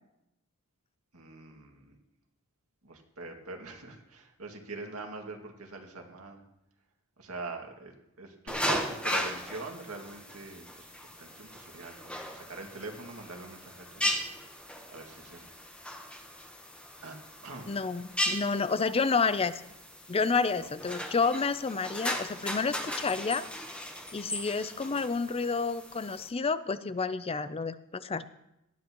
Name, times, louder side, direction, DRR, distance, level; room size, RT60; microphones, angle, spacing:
voice 1, 1.1-1.9 2.8-6.4 7.2-14.3 14.9-15.5 17.0-17.2 17.4-17.8 20.5-20.7, right 3 dB, 70° right, 2 dB, 2.2 m, -43 dB
sound 1, 8.5-26.3, left 1 dB, 5° left, 1.1 m, -37 dB
voice 2, 17.7-19.6 20.1-23.4 24.1-28.3, left 4 dB, 25° left, 14 dB, 0.5 m, -30 dB
19.0 x 13.0 x 3.0 m, 0.87 s
head